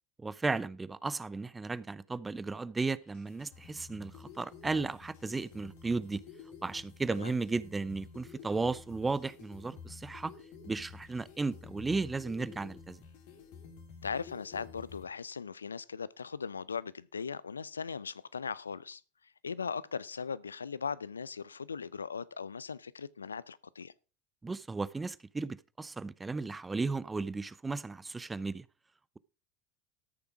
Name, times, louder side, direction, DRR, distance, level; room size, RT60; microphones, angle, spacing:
voice 1, 0.2-6.2 6.6-10.3 10.7-13.0 24.4-28.7, right 3 dB, 15° right, 0.6 m, -35 dB
sound 1, 3.0-15.0, left 6 dB, 60° left, 3.0 m, -51 dB
voice 2, 14.0-23.9, left 5 dB, 85° left, 0.4 m, -39 dB
13.5 x 6.9 x 4.9 m
hypercardioid pair, 80°, 0 cm